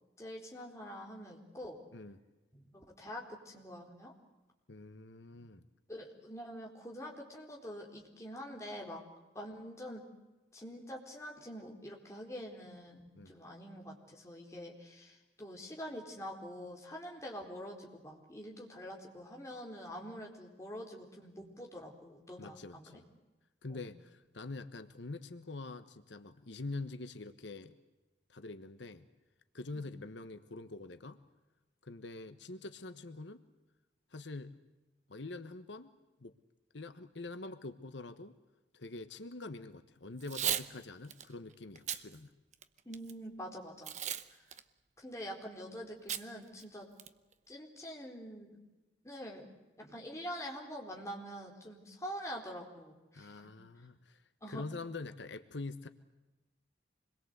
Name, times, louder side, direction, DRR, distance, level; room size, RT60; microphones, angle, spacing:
voice 1, 0.2-1.8 2.5-4.1 5.9-9.0 9.3-10.0 10.5-23.0 23.7-23.8 42.8-43.9 44.3-44.4 45.0-46.9 47.5-48.6 49.0-49.5 49.8-53.5 53.8-53.9 54.4-54.6, equal, 15° left, 0 dB, 4.1 m, -45 dB
voice 2, 4.7-5.6 13.1-13.3 22.4-23.1 23.6-27.7 28.3-29.1 29.5-31.2 31.8-33.4 34.1-34.5 35.1-35.9 36.2-36.3 36.7-38.3 38.7-42.3 53.1-54.2 54.5-55.9, left 3 dB, 90° left, 10 dB, 1.2 m, -45 dB
Packing tape duct tape / Tearing, 40.2-40.7 41.1-41.2 41.7-42.0 42.5-43.1 43.8-44.2 44.5-44.6 46.1-46.2 46.6-46.7 47.0-47.3, right 10 dB, 40° right, 0.9 m, -35 dB
26.0 x 21.5 x 8.1 m, 1.1 s
head